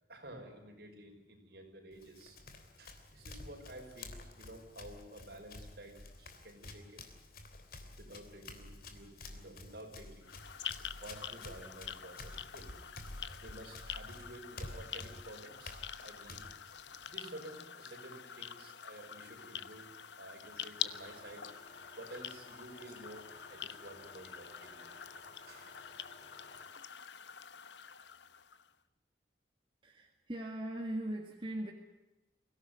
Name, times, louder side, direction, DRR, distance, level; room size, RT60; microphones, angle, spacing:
voice 1, 0.1-2.4 2.8-7.1 8.0-24.9 25.5-25.8 27.8-28.1, right 1 dB, 60° right, 2 dB, 5.8 m, -52 dB
Run, 1.9-17.2, left 2 dB, 55° left, 3.2 m, -51 dB
sound 1, 10.2-28.7, left 9 dB, 80° left, 1.0 m, -46 dB
sound 2, 20.8-26.6, left 1 dB, 40° left, 5.0 m, -58 dB
voice 2, 29.8-31.7, right 1 dB, 30° right, 2 dB, 2.0 m, -39 dB
24.5 x 17.0 x 9.3 m, 1.0 s
head